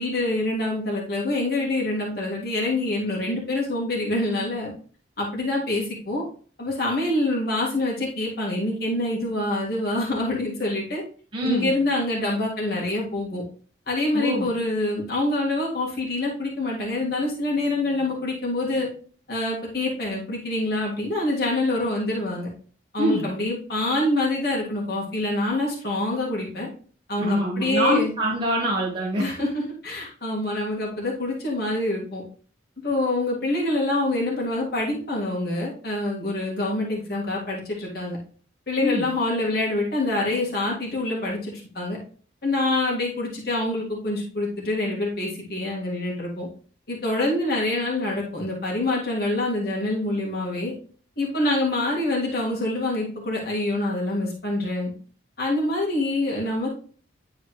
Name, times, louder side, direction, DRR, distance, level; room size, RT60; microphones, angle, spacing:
voice 1, 0.0-4.7 5.2-6.2 6.6-11.0 11.4-13.4 13.9-18.9 19.3-22.5 22.9-26.7 27.1-28.1 29.2-32.2 32.8-38.2 38.7-42.0 42.4-46.5 46.9-50.7 51.2-54.9 55.4-56.7, left 2 dB, 55° left, -3 dB, 2.0 m, -26 dB
voice 2, 11.3-11.7 14.1-14.5 23.0-23.3 27.2-29.3 38.8-39.0, equal, 25° right, -3 dB, 1.2 m, -24 dB
9.9 x 3.9 x 3.2 m, 0.42 s
head